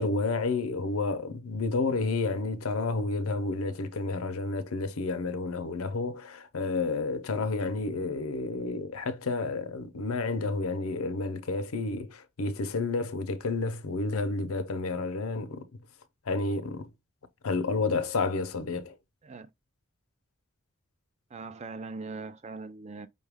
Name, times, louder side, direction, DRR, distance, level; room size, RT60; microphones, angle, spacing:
voice 1, 0.0-15.7 16.3-16.9 17.4-18.9, left 3 dB, 85° left, 0.6 m, -30 dB
voice 2, 21.3-23.1, right 3 dB, 30° right, 0.4 m, -40 dB
5.3 x 2.3 x 3.4 m
head